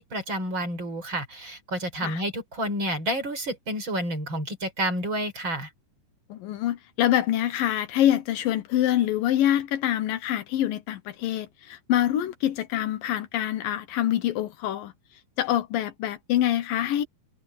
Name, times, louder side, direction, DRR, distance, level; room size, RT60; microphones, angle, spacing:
voice 1, 0.0-5.7, right 1 dB, 30° right, 5.5 m, -30 dB
voice 2, 6.3-14.9 15.4-17.0, left 12 dB, 75° left, 2.7 m, -25 dB
omnidirectional pair, 4.2 m